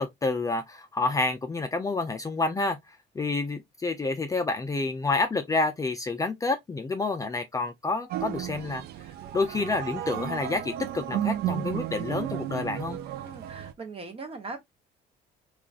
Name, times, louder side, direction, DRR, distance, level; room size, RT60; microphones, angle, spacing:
voice 1, 0.0-2.8 3.2-8.8 9.3-13.0, left 3 dB, 20° left, 0.4 m, -28 dB
sound 1, 8.1-13.7, right 12 dB, 70° right, 0.4 m, -33 dB
voice 2, 13.2-14.6, right 3 dB, 35° right, 0.9 m, -40 dB
3.6 x 2.4 x 2.3 m
cardioid pair, 110°, 17 cm